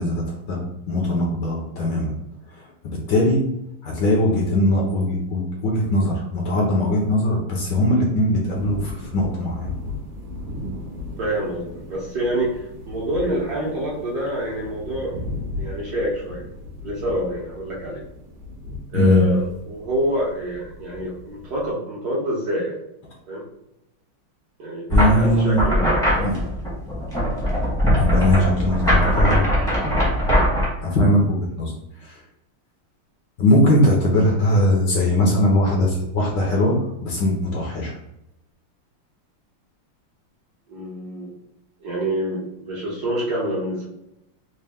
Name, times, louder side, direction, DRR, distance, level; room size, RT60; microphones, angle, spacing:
voice 1, 0.0-2.1 2.8-3.4 3.8-9.7 18.9-19.2 24.9-25.7 26.2-26.3 28.0-29.5 30.8-31.7 32.0-32.1 33.4-37.9, left 1 dB, 65° left, -1 dB, 1.3 m, -20 dB
sound 1, 8.5-21.7, left 2 dB, 75° right, 1.6 m, -36 dB
voice 2, 11.2-16.5 16.8-18.0 18.9-22.8 23.3-23.4 24.6-26.3 40.7-41.3 41.8-43.9, right 1 dB, 55° right, -5 dB, 1.3 m, -27 dB
sound 2, 24.9-30.7, equal, 5° left, 0.7 m, -20 dB
4.2 x 2.2 x 3.4 m, 0.85 s
omnidirectional pair, 2.3 m